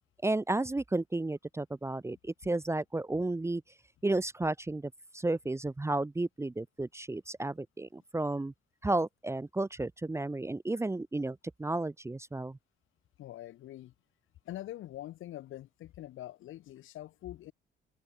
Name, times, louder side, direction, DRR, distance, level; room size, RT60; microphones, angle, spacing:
voice 1, 0.2-3.6 4.0-8.5 8.8-12.6, right 2 dB, 15° right, 0.8 m, -32 dB
voice 2, 13.2-13.9 14.4-17.5, left 14 dB, 85° left, 6.5 m, -44 dB
cardioid pair, 90°, 20 cm